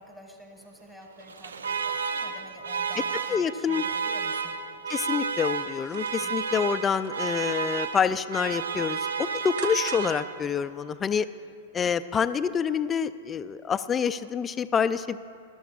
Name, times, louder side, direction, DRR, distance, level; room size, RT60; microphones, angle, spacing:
voice 1, 0.0-4.5 6.2-6.4, right 1 dB, 10° right, 0 dB, 1.6 m, -48 dB
Alarm, 1.2-10.6, right 5 dB, 75° right, 0.5 m, -32 dB
voice 2, 3.3-3.8 4.9-11.3 11.7-15.2, left 7 dB, 20° left, 13 dB, 0.4 m, -27 dB
sound 1, 5.2-7.2 7.6-8.1 8.4-10.3 10.6-10.7, right 4 dB, 55° right, 1.2 m, -47 dB
20.5 x 12.5 x 2.4 m, 2.3 s
figure-of-eight pair, 100°, 0 cm